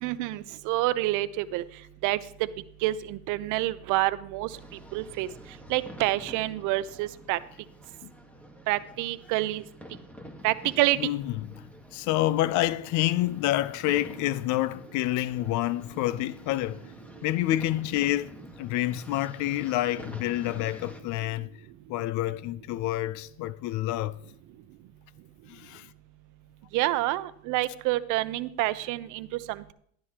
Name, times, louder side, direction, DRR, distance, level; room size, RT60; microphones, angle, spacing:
voice 1, 0.0-1.6 2.0-2.2 2.8-4.5 4.9-5.3 5.7-7.4 8.7-9.6 10.4-11.0 26.7-29.7, right 17 dB, 75° right, 0.7 m, -27 dB
sound 1, 4.5-21.0, equal, 5° left, 1.4 m, -48 dB
voice 2, 11.0-11.3 11.9-16.8 17.2-18.3 18.6-21.5 21.9-24.1 25.5-25.9, left 15 dB, 70° left, 0.5 m, -28 dB
12.5 x 11.5 x 2.9 m
cardioid pair, 115°, 31 cm